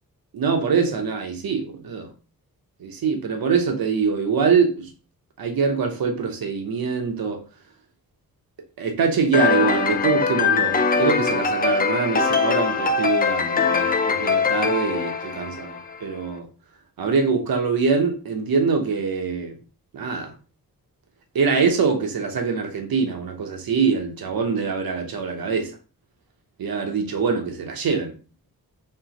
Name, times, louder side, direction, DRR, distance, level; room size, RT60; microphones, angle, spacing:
voice 1, 0.3-2.1 2.8-4.9 5.4-7.4 8.8-16.5 17.0-19.6 19.9-20.3 21.3-25.8 26.6-28.2, right 5 dB, 80° right, 0.9 m, -24 dB
sound 1, 9.3-16.0, left 5 dB, 25° left, 0.4 m, -22 dB
4.6 x 3.0 x 2.9 m
wide cardioid pair, 125°, 35 cm